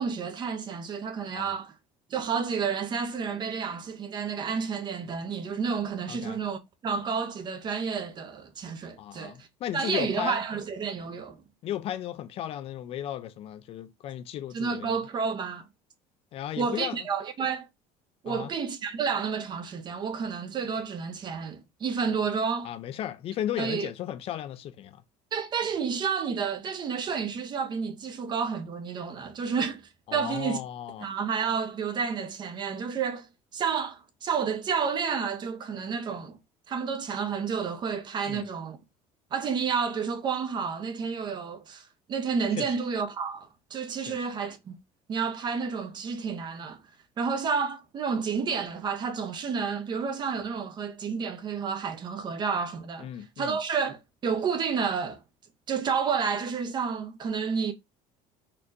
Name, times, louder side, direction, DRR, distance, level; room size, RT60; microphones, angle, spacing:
voice 1, 0.0-1.7 2.1-9.5 9.7-11.4 14.5-15.7 16.6-17.7 18.2-22.7 23.6-23.9 25.3-30.6 31.0-33.3 33.5-36.4 36.7-38.8 39.3-44.7 45.1-46.8 47.2-53.1 53.4-55.2 55.7-57.7, right 6 dB, 30° right, 0.7 m, -30 dB
voice 2, 9.0-10.4 11.6-15.0 16.3-17.0 18.3-18.5 22.6-25.0 30.1-31.1 38.3-38.5 42.6-42.7 44.1-44.3 53.0-53.6, left 11 dB, 45° left, 0.4 m, -35 dB
4.3 x 2.9 x 2.5 m
cardioid pair, 150°, 14 cm